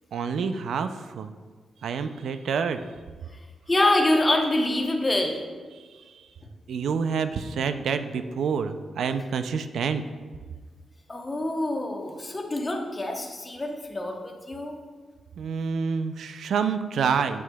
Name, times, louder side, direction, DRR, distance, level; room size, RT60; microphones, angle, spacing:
voice 1, 0.1-1.3 1.8-2.8 6.7-10.0 15.4-17.4, right 6 dB, 80° right, 9 dB, 0.3 m, -27 dB
voice 2, 3.7-5.4 11.1-14.7, left 1 dB, 20° left, 2 dB, 0.8 m, -25 dB
8.2 x 7.3 x 2.2 m, 1.5 s
wide cardioid pair, 135°, 0 cm